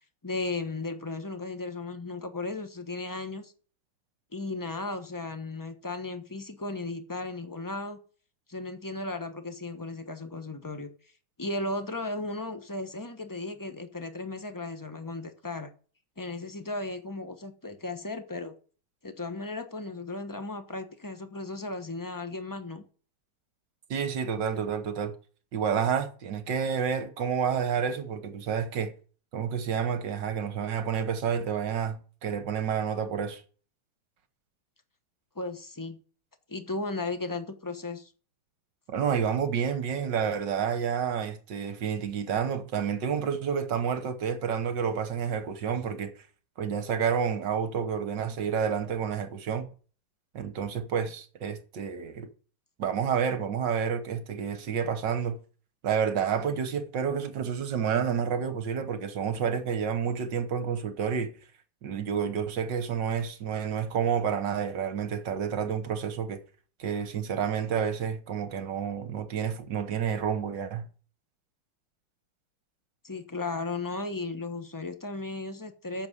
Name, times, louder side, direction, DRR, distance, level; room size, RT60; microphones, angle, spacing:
voice 1, 0.2-3.5 4.3-8.0 8.5-10.9 11.4-15.7 16.2-18.5 19.0-22.8 35.3-36.0 36.5-38.1 73.0-76.1, left 3 dB, 30° left, 0.3 m, -35 dB
voice 2, 23.9-25.1 25.5-28.9 29.3-33.4 38.9-46.1 46.6-49.7 50.3-52.3 52.8-55.4 55.8-61.3 61.8-66.4 66.8-70.9, right 7 dB, 60° right, 1.7 m, -29 dB
9.1 x 7.0 x 7.9 m
omnidirectional pair, 2.4 m